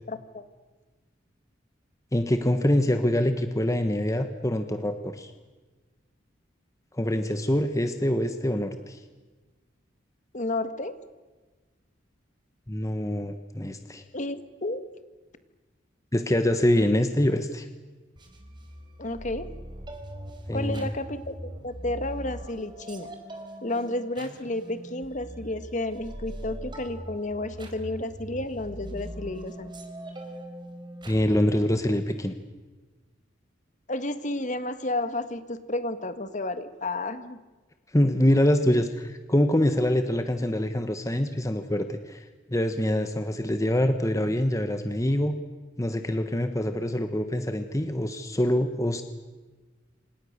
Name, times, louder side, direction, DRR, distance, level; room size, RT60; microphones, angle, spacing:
voice 1, 0.1-0.4 10.3-11.0 14.1-14.8 19.0-19.5 20.5-23.1 23.6-29.7 33.9-37.4, left 2 dB, 40° left, 10 dB, 1.8 m, -31 dB
voice 2, 2.1-5.3 6.9-9.0 12.7-14.0 16.1-17.7 20.5-20.9 31.1-32.4 37.9-45.3 45.8-49.0, left 1 dB, 15° left, 7 dB, 1.3 m, -25 dB
sound 1, 18.2-31.9, equal, 25° right, 4.2 m, -41 dB
28.0 x 26.5 x 6.8 m, 1.3 s
head